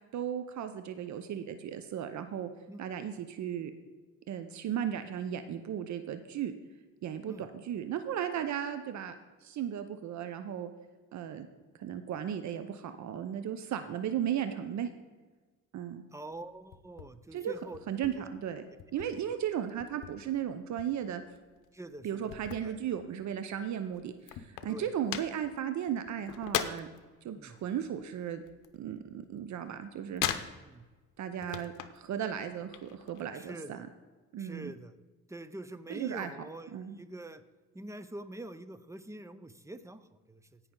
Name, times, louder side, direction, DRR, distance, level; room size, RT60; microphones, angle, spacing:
voice 1, 0.1-2.5 2.8-3.7 4.3-6.5 7.0-9.1 9.4-10.7 11.1-11.5 11.8-14.9 15.7-16.0 17.3-17.5 17.9-18.6 18.9-21.2 22.0-26.9 27.2-28.4 28.7-30.2 31.2-33.9 34.3-34.7 35.9-36.3 36.7-37.0, right 9 dB, 65° right, 9 dB, 0.8 m, -35 dB
voice 2, 16.1-18.2 19.0-19.1 21.7-22.8 24.7-24.9 27.4-27.6 30.7-30.8 33.3-33.9 34.4-34.9 35.3-37.4 37.7-40.6, right 1 dB, 10° right, 12 dB, 0.6 m, -45 dB
sound 1, 16.3-17.1 17.4-19.1 19.5-20.4 20.8-23.3 23.6-23.7 23.9-27.1 27.4-29.3 29.6-30.9 31.3-32.1 32.4-33.2, left 11 dB, 85° left, 0.8 m, -38 dB
16.0 x 5.8 x 3.8 m, 1.3 s
cardioid pair, 90°, 31 cm